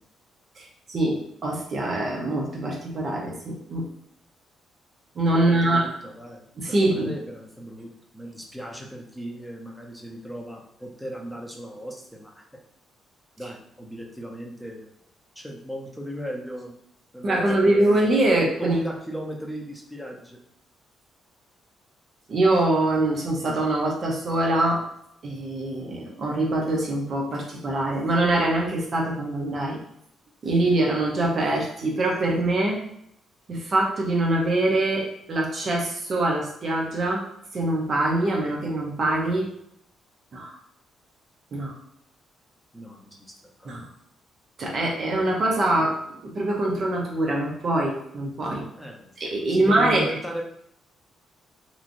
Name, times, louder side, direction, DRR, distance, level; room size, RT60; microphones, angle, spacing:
voice 1, 0.6-3.8 5.1-5.9 6.6-7.1 17.2-18.8 22.3-24.8 25.2-29.8 30.4-32.8 33.5-37.2 37.5-39.5 40.3-40.6 41.5-41.8 43.6-43.9 44.6-46.0 46.2-48.6 49.2-50.1, right 2 dB, 50° right, -1 dB, 0.7 m, -24 dB
voice 2, 5.4-12.4 13.4-14.9 15.4-16.7 17.1-18.0 18.6-20.4 42.7-43.2 43.6-43.7 48.8-49.1 49.5-50.4, equal, ahead, 0 dB, 0.6 m, -37 dB
3.0 x 2.6 x 2.5 m, 0.75 s
cardioid pair, 90°, 0 cm